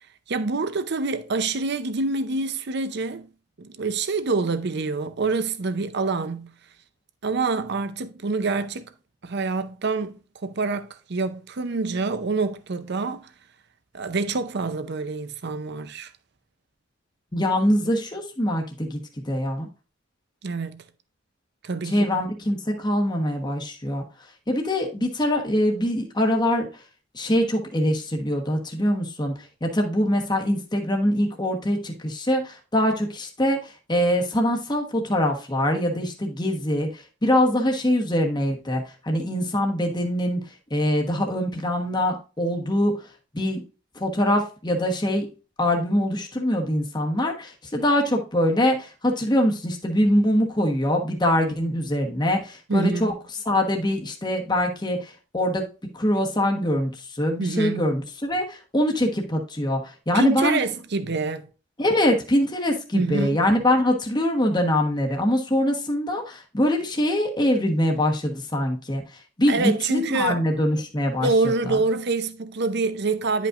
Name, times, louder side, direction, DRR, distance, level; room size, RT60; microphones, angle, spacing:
voice 1, 0.3-3.3 3.6-6.5 7.2-8.8 9.2-13.3 13.9-16.1 20.4-20.8 21.6-22.2 52.7-53.2 57.4-57.9 60.1-61.5 62.9-63.4 69.5-70.4 71.2-73.5, right 3 dB, 55° right, 0.6 m, -26 dB
voice 2, 17.3-19.0 19.3-19.7 21.8-24.0 24.5-26.7 27.1-29.3 29.6-33.6 33.9-40.4 40.7-43.0 43.3-43.6 44.0-45.3 45.6-53.1 53.5-55.7 55.9-59.8 60.1-60.6 61.8-69.0 69.4-71.3 71.6-71.7, left 1 dB, 20° left, 1.2 m, -23 dB
10.5 x 5.3 x 2.5 m
head